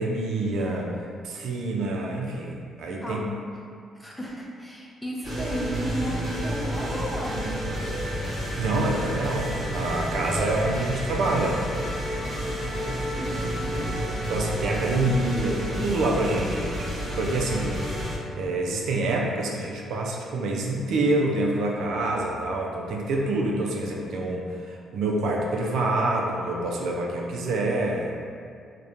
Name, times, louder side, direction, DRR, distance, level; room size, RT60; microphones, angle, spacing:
voice 1, 0.0-3.2 8.6-11.8 14.3-18.1 18.3-28.1, right 2 dB, 75° right, -1 dB, 0.3 m, -27 dB
voice 2, 3.0-3.4 3.9-7.6 10.2-10.5 11.0-11.1 12.1-14.1, equal, 5° left, -4 dB, 0.5 m, -35 dB
sound 1, 5.2-18.2, equal, 45° right, 1.2 m, -30 dB
2.8 x 2.1 x 2.4 m, 2.2 s
cardioid pair, 90°, 0 cm